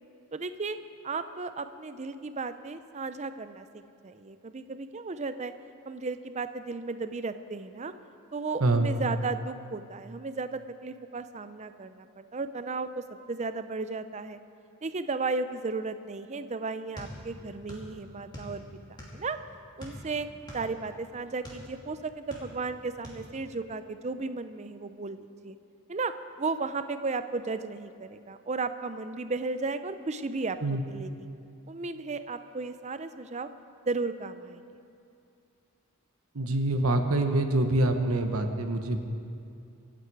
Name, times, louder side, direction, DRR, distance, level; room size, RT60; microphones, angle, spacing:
voice 1, 0.3-0.8 1.0-5.5 5.9-7.9 8.3-14.4 14.8-18.6 19.1-19.4 19.8-20.3 20.5-25.6 25.9-26.1 26.4-31.3 31.7-33.5 33.9-34.7, right 3 dB, 30° right, 11 dB, 0.5 m, -34 dB
voice 2, 8.6-8.9 30.6-30.8 36.3-39.0, right 2 dB, 75° right, 6 dB, 1.0 m, -25 dB
sound 1, 17.0-17.9 18.2-19.3 19.8-21.7 22.1-22.7 23.0-23.2, equal, 20° left, 2.7 m, -43 dB
25.0 x 8.9 x 4.7 m, 2.5 s
head